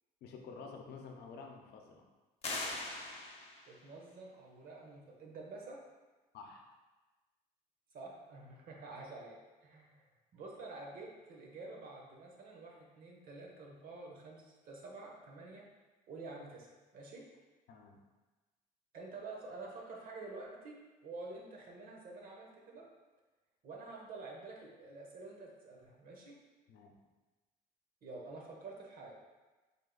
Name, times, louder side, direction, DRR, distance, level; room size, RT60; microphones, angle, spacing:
voice 1, 0.2-2.0 6.3-6.6 17.7-18.0 26.7-26.9, left 5 dB, 75° left, 2 dB, 0.6 m, -50 dB
sound 1, 2.4-3.8, left 2 dB, 35° left, 0.7 m, -41 dB
voice 2, 3.6-5.8 7.9-10.1 10.3-15.7 16.1-16.7 16.9-17.3 18.9-22.9 23.6-26.3 28.0-29.1, right 3 dB, 60° right, -1 dB, 0.9 m, -49 dB
3.5 x 2.4 x 3.8 m, 1.2 s
cardioid pair, 110°, 17 cm